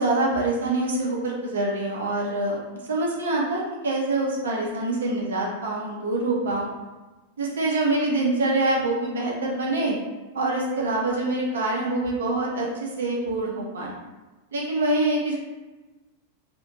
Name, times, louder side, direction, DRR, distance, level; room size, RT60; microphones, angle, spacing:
voice 1, 0.0-2.6 2.9-6.7 7.4-10.0 10.3-14.0 14.5-15.4, right 2 dB, 65° right, -2 dB, 0.5 m, -25 dB
2.4 x 2.1 x 2.8 m, 1.2 s
figure-of-eight pair, 90°, 0 cm